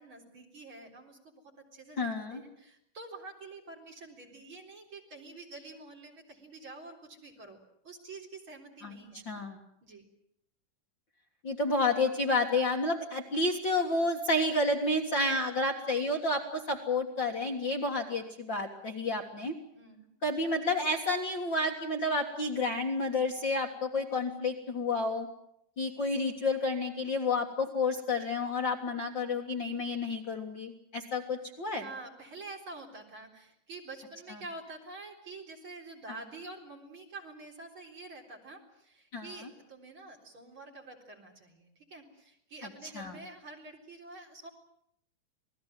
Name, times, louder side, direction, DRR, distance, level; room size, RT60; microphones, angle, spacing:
voice 1, 0.0-7.6 7.8-9.2 9.8-10.0 19.7-20.1 31.7-44.5, right 3 dB, 40° right, 1 dB, 4.5 m, -47 dB
voice 2, 2.0-2.4 8.8-8.9 9.3-9.6 11.4-19.5 20.2-25.3 25.8-31.8 39.1-39.3 43.0-43.1, left 2 dB, 40° left, 2 dB, 2.1 m, -30 dB
27.5 x 19.5 x 7.5 m, 0.75 s
omnidirectional pair, 3.6 m